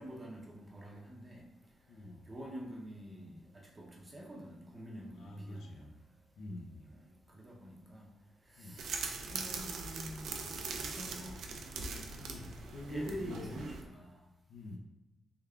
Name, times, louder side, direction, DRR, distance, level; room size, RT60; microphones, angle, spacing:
voice 1, 0.0-1.4 2.3-5.7 7.0-7.1 7.3-8.0 8.6-8.9 9.2-10.5 10.8-12.1 12.9-14.1, equal, 15° right, -2 dB, 0.6 m, -46 dB
voice 2, 1.9-2.3 5.1-5.9 6.4-6.9 8.6-8.8 12.1-13.5 14.5-14.8, left 1 dB, 80° left, 1 dB, 0.5 m, -46 dB
sound 1, 8.8-13.8, right 4 dB, 75° right, 0.4 m, -41 dB
3.5 x 3.4 x 2.3 m, 0.96 s
cardioid pair, 145°, 0 cm